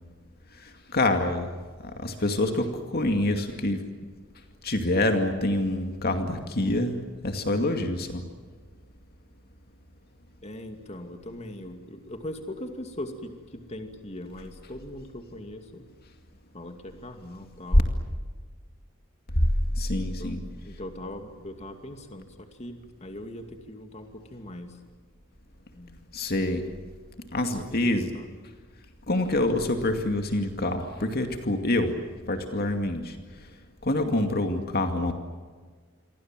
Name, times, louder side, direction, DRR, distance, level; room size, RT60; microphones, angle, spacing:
voice 1, 0.6-1.5 1.8-3.8 4.6-7.0 7.2-8.2 19.8-20.4 26.1-26.6 27.3-28.1 29.1-31.9 32.3-33.2 33.8-35.1, left 1 dB, 50° left, 5 dB, 2.3 m, -26 dB
voice 2, 10.4-15.9 16.5-17.9 20.2-24.8 25.7-26.1 27.5-28.3, left 1 dB, 30° left, 5 dB, 2.4 m, -40 dB
29.0 x 24.0 x 7.6 m, 1.5 s
head